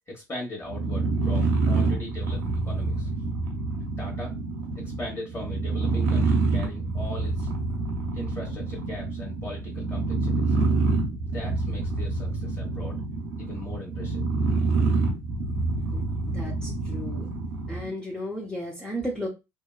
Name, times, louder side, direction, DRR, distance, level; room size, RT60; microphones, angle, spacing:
voice 1, 0.1-3.1 4.0-4.4 4.8-7.5 8.1-10.6 11.3-13.0 13.4-14.2 15.8-16.2, left 1 dB, 30° left, -2 dB, 1.2 m, -39 dB
sound 1, 0.6-17.9, right 3 dB, 80° right, 0.8 m, -26 dB
voice 2, 16.3-17.3 17.7-19.3, equal, 10° left, -3 dB, 0.7 m, -34 dB
2.7 x 2.2 x 2.3 m, 0.24 s
hypercardioid pair, 70°, 9 cm